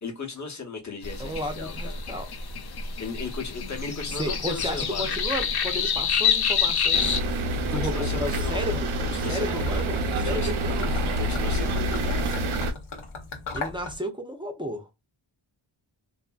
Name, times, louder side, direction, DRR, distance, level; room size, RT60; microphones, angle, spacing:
voice 1, 0.0-2.0 3.0-5.1 7.7-8.8 9.2-9.8 10.2-10.6 10.9-12.4, left 4 dB, 35° left, 0.9 m, -37 dB
sound 1, 1.0-7.2, left 6 dB, 50° left, 0.5 m, -27 dB
voice 2, 1.2-2.3 4.1-7.1 7.6-10.9 13.5-14.9, equal, 10° right, 0.5 m, -33 dB
sound 2, 6.9-12.7, right 1 dB, 75° right, 0.6 m, -27 dB
Gurgling / Liquid, 8.2-14.0, left 3 dB, 75° left, 0.9 m, -39 dB
2.6 x 2.6 x 2.3 m
wide cardioid pair, 65°, 49 cm